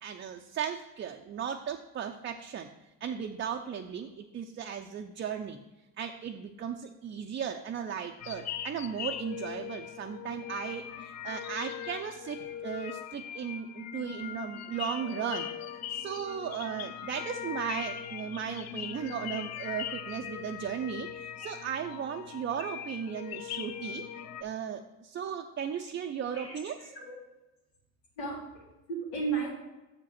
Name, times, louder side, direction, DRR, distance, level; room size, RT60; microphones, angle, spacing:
voice 1, 0.0-2.7 3.0-5.6 6.0-15.5 15.9-24.0 24.4-26.8, right 8 dB, 30° right, 4 dB, 0.5 m, -36 dB
sound 1, 8.2-24.4, left 9 dB, 40° left, 0.5 m, -40 dB
voice 2, 26.3-27.2 28.2-29.5, right 4 dB, 90° left, -3 dB, 2.8 m, -35 dB
7.0 x 4.9 x 5.7 m, 1.0 s
supercardioid pair, 85°, 41 cm